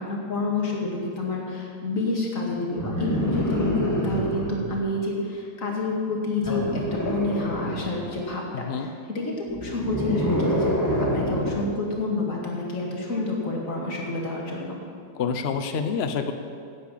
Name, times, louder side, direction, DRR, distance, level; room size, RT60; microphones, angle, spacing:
voice 1, 0.0-10.7 11.1-14.8, left 2 dB, 40° left, -2 dB, 2.5 m, -28 dB
sound 1, 2.8-4.7 6.4-8.2 9.5-11.7 13.1-13.2, equal, 10° left, 1.7 m, -27 dB
voice 2, 8.5-8.9 15.2-16.3, left 6 dB, 85° left, 7 dB, 0.5 m, -27 dB
10.0 x 9.1 x 8.4 m, 2.2 s
omnidirectional pair, 2.2 m